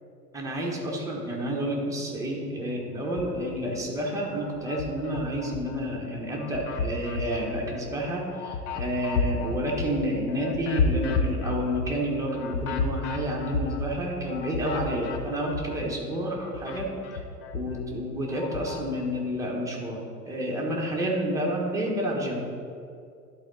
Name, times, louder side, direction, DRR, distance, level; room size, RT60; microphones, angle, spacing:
voice 1, 0.3-17.2 17.5-22.5, equal, 5° right, -3 dB, 1.4 m, -30 dB
sound 1, 3.0-3.9 4.3-5.9 6.3-16.0 16.3-18.9, left 4 dB, 45° left, 0.8 m, -32 dB
11.5 x 4.1 x 4.0 m, 2.4 s
figure-of-eight pair, 90°, 48 cm